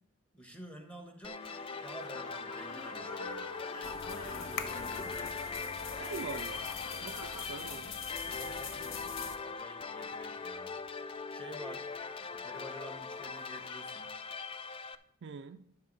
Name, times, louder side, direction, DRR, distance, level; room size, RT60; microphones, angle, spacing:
voice 1, 0.3-1.5 1.8-3.5 4.2-5.2 8.3-10.7 11.3-11.9 12.2-14.1, equal, 5° left, 1.1 m, -50 dB
sound 1, 1.2-15.0, left 4 dB, 25° left, 0.3 m, -41 dB
sound 2, 1.4-7.7, left 2 dB, 90° left, 1.3 m, -47 dB
sound 3, 3.8-9.4, left 6 dB, 60° left, 0.8 m, -44 dB
voice 2, 6.0-6.7 7.0-8.0 15.2-15.6, right 5 dB, 55° right, 0.4 m, -43 dB
11.0 x 6.7 x 4.0 m
head